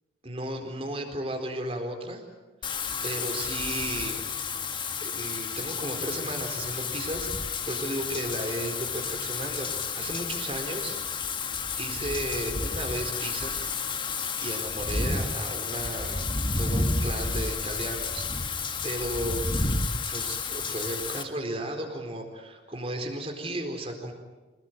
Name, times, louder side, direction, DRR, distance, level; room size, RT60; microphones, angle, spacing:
voice 1, 0.2-2.2 3.0-4.2 5.0-11.0 11.8-13.6 14.4-16.3 16.5-18.3 18.8-19.5 20.1-24.1, right 1 dB, 30° right, 4 dB, 4.3 m, -34 dB
Wind / Rain, 2.6-21.2, left 4 dB, 25° left, 1.5 m, -31 dB
27.0 x 19.5 x 9.4 m, 1.2 s
head